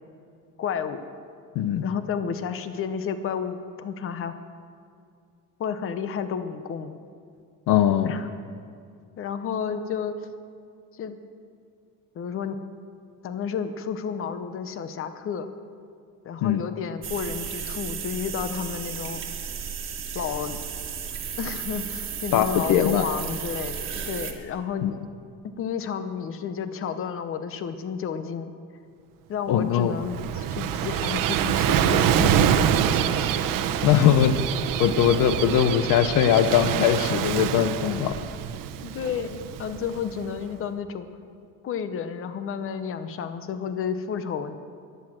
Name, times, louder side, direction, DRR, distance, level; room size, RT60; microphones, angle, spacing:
voice 1, 0.6-1.0 1.8-4.4 5.6-7.0 8.0-8.3 9.2-10.1 10.9-11.2 12.1-12.6 13.2-15.5 16.2-19.2 20.1-20.6 21.4-25.0 25.6-28.5 29.3-33.3 34.0-34.1 38.8-41.1 41.6-44.6, left 7 dB, 40° left, 10 dB, 0.9 m, -31 dB
voice 2, 7.7-8.1 16.4-16.6 22.3-23.0 24.8-25.0 29.5-29.9 33.8-34.3 34.8-38.1, left 10 dB, 70° left, 11 dB, 0.8 m, -21 dB
sound 1, 17.0-24.3, right 7 dB, 40° right, 1.6 m, -34 dB
Gull seagull / Waves surf, 29.8-40.3, right 9 dB, 75° right, 0.9 m, -25 dB
14.0 x 11.0 x 7.5 m, 2.3 s
cardioid pair, 155°, 33 cm